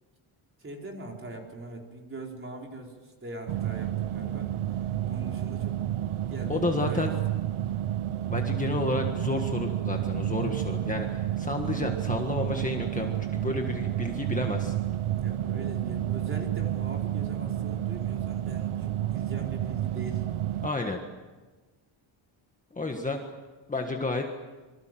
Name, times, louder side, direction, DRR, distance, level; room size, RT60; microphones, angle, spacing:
voice 1, 0.6-5.8 6.3-7.1 15.2-20.2 23.0-23.1, right 2 dB, 25° right, 1 dB, 4.5 m, -42 dB
sound 1, 3.5-20.7, right 12 dB, 75° right, 0.9 m, -30 dB
voice 2, 6.5-7.1 8.3-14.7 20.6-21.0 22.7-23.2 23.7-24.2, left 2 dB, 15° left, 2 dB, 1.6 m, -31 dB
27.0 x 24.0 x 7.7 m, 1.3 s
wide cardioid pair, 175°, 49 cm